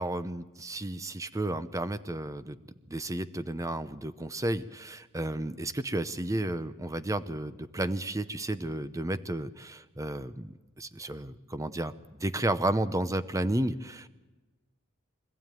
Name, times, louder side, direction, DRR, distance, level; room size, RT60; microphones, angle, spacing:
voice 1, 0.0-2.6 2.9-11.9 12.2-14.1, right 1 dB, 15° right, 12 dB, 0.7 m, -32 dB
25.0 x 15.0 x 9.1 m, 1.2 s
head